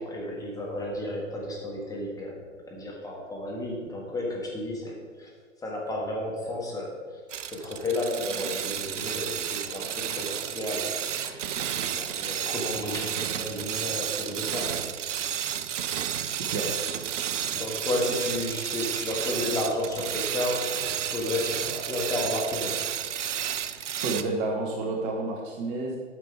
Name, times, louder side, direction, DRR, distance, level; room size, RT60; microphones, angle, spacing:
voice 1, 0.0-5.3 5.6-7.0 7.5-10.9 11.2-14.8 15.3-15.4 17.5-20.8 21.1-22.8, left 1 dB, 10° left, -2 dB, 1.6 m, -32 dB
sound 1, 7.3-24.2, right 9 dB, 70° right, 0.6 m, -32 dB
voice 2, 24.0-26.0, right 3 dB, 30° right, 1 dB, 1.1 m, -30 dB
9.1 x 6.0 x 4.6 m, 1.6 s
hypercardioid pair, 125°, 38 cm